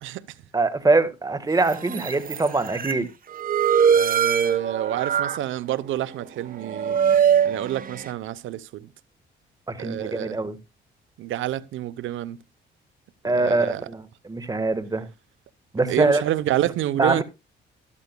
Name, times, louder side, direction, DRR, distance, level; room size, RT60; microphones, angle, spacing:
voice 1, 0.5-3.1 9.7-10.6 13.2-15.0 15.7-16.2 16.9-17.2, right 3 dB, 20° right, 1.4 m, -23 dB
sound 1, 1.7-2.9 3.3-5.4 5.9-6.2 6.6-8.1, right 8 dB, 45° right, 1.1 m, -22 dB
voice 2, 3.9-7.0 7.4-8.9 9.8-10.4 11.2-12.4 13.2-13.9 15.9-17.2, right 13 dB, 80° right, 0.7 m, -28 dB
12.5 x 12.5 x 2.2 m
cardioid pair, 90°, 20 cm